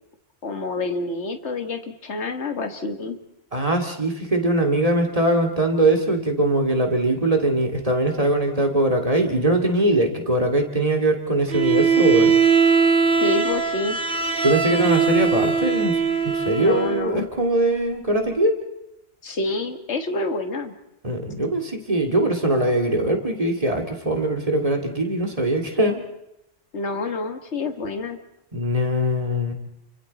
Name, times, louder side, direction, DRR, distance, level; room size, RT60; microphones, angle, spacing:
voice 1, 0.4-3.2 13.2-14.0 16.6-17.3 19.2-20.7 26.7-28.2, left 2 dB, 70° left, 7 dB, 1.9 m, -27 dB
voice 2, 3.5-12.4 14.4-15.9 16.2-18.6 21.0-26.0 28.5-29.5, right 1 dB, 30° right, 3 dB, 2.4 m, -21 dB
Bowed string instrument, 11.5-17.1, right 6 dB, 50° right, 1.6 m, -20 dB
29.0 x 25.0 x 4.2 m, 0.82 s
omnidirectional pair, 1.2 m